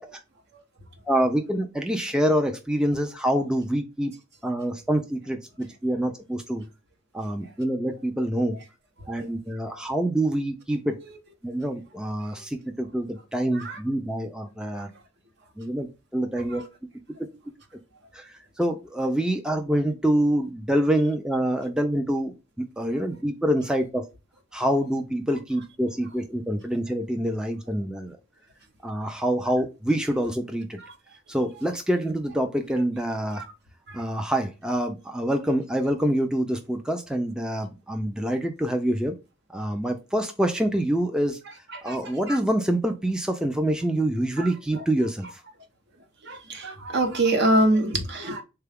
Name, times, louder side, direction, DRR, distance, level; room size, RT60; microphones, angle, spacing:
voice 1, 1.1-4.1 4.4-6.6 7.1-8.6 9.1-11.0 11.4-14.9 15.6-16.6 18.1-24.1 24.5-28.2 28.8-30.8 31.3-33.4 33.9-39.1 39.5-41.4 41.8-45.4, right 1 dB, 5° right, 0.3 m, -26 dB
voice 2, 41.7-42.4 44.4-44.8 46.2-48.4, right 1 dB, 60° right, 0.9 m, -25 dB
3.7 x 2.3 x 3.4 m
head